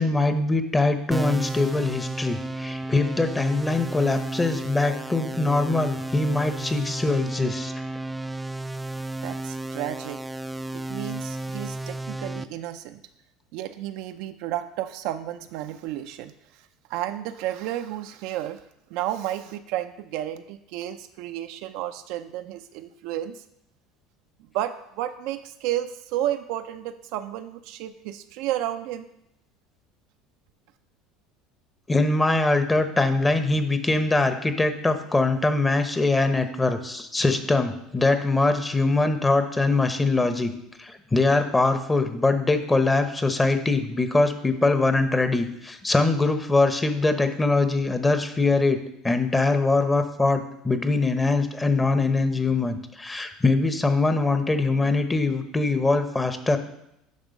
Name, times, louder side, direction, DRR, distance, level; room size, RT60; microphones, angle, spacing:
voice 1, 0.0-7.7 31.9-40.5 40.8-48.8 49.0-56.6, left 3 dB, 15° left, 8 dB, 0.9 m, -22 dB
sound 1, 1.1-12.4, right 2 dB, 10° right, 0.4 m, -33 dB
voice 2, 9.2-10.2 10.7-13.0 13.5-16.3 16.9-18.6 18.9-23.4 24.5-29.0, right 12 dB, 70° right, 8 dB, 0.5 m, -32 dB
10.5 x 3.6 x 5.3 m, 0.80 s
hypercardioid pair, 85°, 0 cm